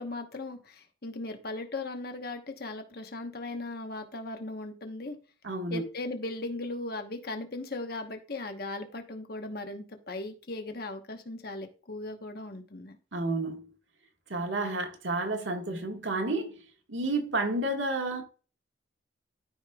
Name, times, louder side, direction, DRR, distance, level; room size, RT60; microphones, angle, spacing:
voice 1, 0.0-5.2 5.7-13.0, left 2 dB, 50° left, 1.1 m, -38 dB
voice 2, 5.4-5.8 13.1-13.7 14.3-16.6 16.9-18.2, right 2 dB, 80° right, 1.6 m, -30 dB
13.0 x 5.1 x 2.3 m
head